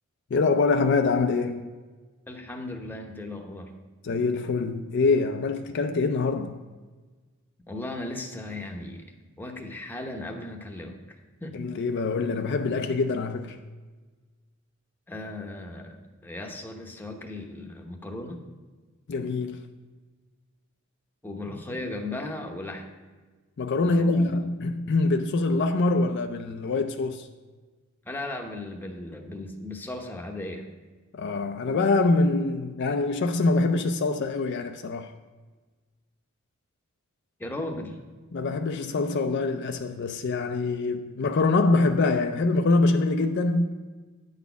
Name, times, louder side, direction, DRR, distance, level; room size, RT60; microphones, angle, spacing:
voice 1, 0.3-1.7 4.0-6.6 11.5-13.6 19.1-19.7 23.6-27.3 31.1-35.1 38.3-43.7, left 3 dB, 55° left, 0.4 m, -24 dB
voice 2, 2.3-3.8 7.7-9.1 9.4-11.0 11.4-11.6 15.1-18.4 21.2-22.9 23.8-24.3 28.0-30.6 37.4-38.0, left 2 dB, 10° left, 0.8 m, -36 dB
9.5 x 4.1 x 6.8 m
head